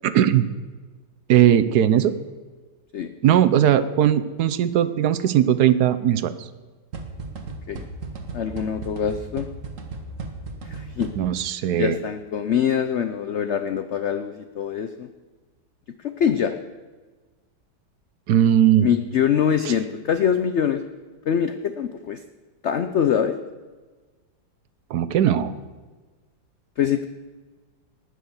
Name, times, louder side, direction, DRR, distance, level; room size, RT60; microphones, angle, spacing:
voice 1, 0.0-0.5 1.3-2.1 3.2-6.5 11.2-12.0 18.3-18.9 19.6-19.7 24.9-25.5, right 10 dB, 65° right, 13 dB, 1.1 m, -19 dB
sound 1, 6.9-11.5, right 3 dB, 45° right, 1.5 m, -36 dB
voice 2, 8.3-9.5 10.6-11.1 11.7-15.1 16.0-16.6 18.8-20.8 21.3-22.2 22.6-23.4 26.8-27.1, left 8 dB, 85° left, 10 dB, 0.6 m, -24 dB
19.0 x 6.5 x 7.0 m, 1.3 s
omnidirectional pair, 2.0 m